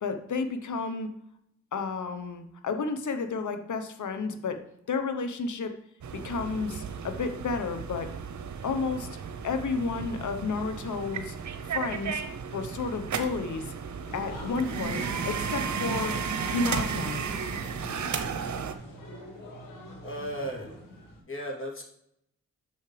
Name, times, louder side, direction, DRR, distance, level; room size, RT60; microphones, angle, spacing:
voice 1, 0.0-1.1 1.7-4.6 4.9-5.7 6.1-8.1 8.6-9.1 9.4-11.4 11.7-12.2 12.5-13.7 14.1-16.2 16.5-17.2, left 4 dB, 70° left, 8 dB, 1.1 m, -31 dB
sound 1, 6.0-18.7, right 6 dB, 65° right, 0.9 m, -34 dB
sound 2, 14.1-21.2, left 1 dB, 90° left, 2.2 m, -43 dB
voice 2, 20.0-20.8 21.3-21.8, equal, 40° left, -1 dB, 3.0 m, -35 dB
8.4 x 6.3 x 3.3 m, 0.75 s
supercardioid pair, 45°, 32 cm